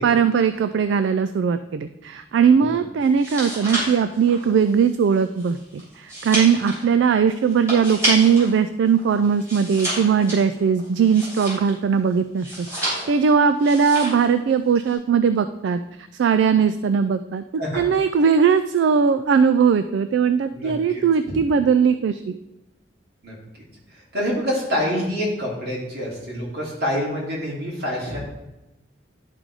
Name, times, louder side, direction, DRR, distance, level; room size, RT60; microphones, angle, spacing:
voice 1, 0.0-15.8 16.2-17.4 17.7-22.4, right 6 dB, 75° right, 10 dB, 0.3 m, -19 dB
sound 1, 3.0-8.5 8.9-11.9 12.4-13.3 13.6-14.3 14.6-14.9, equal, 15° right, 3.3 m, -29 dB
voice 2, 20.5-21.3 23.2-23.3 24.1-28.2, equal, 60° right, -4 dB, 2.8 m, -26 dB
11.0 x 3.8 x 4.8 m, 0.95 s
head